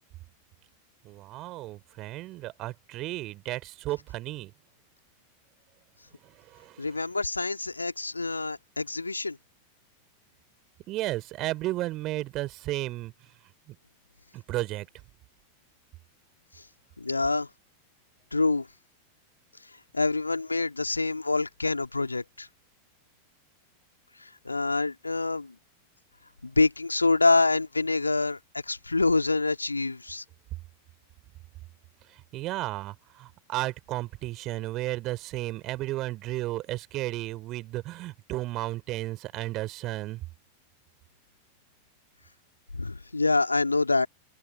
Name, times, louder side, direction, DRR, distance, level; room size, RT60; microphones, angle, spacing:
voice 1, 1.0-4.5 6.2-6.9 10.9-13.1 13.7-13.8 14.3-14.9 32.1-40.2, right 17 dB, 35° right, 3.3 m, -33 dB
voice 2, 6.8-9.4 17.0-17.5 18.3-18.7 19.9-22.5 24.2-25.5 26.4-28.4 28.7-30.2 42.7-44.1, left 3 dB, 80° left, 2.6 m, -26 dB
open air
figure-of-eight pair, 90°, 0 cm